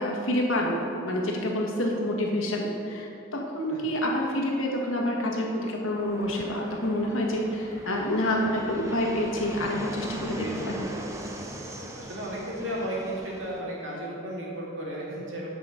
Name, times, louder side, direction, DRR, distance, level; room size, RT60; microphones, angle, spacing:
voice 1, 0.0-10.9, left 1 dB, 80° left, -1 dB, 1.4 m, -28 dB
Fixed-wing aircraft airplane, 6.0-13.6, right 1 dB, 15° right, 0.6 m, -40 dB
voice 2, 10.3-10.8 11.9-15.5, right 1 dB, 70° right, -4 dB, 2.1 m, -34 dB
8.7 x 5.1 x 6.3 m, 2.7 s
head